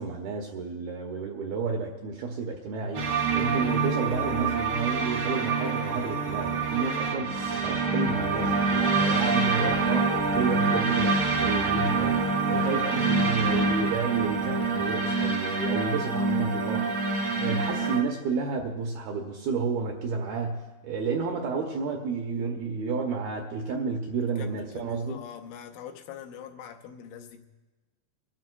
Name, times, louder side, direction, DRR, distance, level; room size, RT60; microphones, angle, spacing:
voice 1, 0.0-3.0 3.3-12.2 12.5-16.9 17.4-25.2, right 4 dB, 75° right, 1 dB, 2.3 m, -31 dB
sound 1, 2.9-18.0, right 3 dB, 60° right, 1.7 m, -26 dB
voice 2, 12.8-13.1 24.2-27.5, left 8 dB, 85° left, 5 dB, 3.2 m, -43 dB
28.0 x 12.5 x 2.2 m, 1.2 s
omnidirectional pair, 5.4 m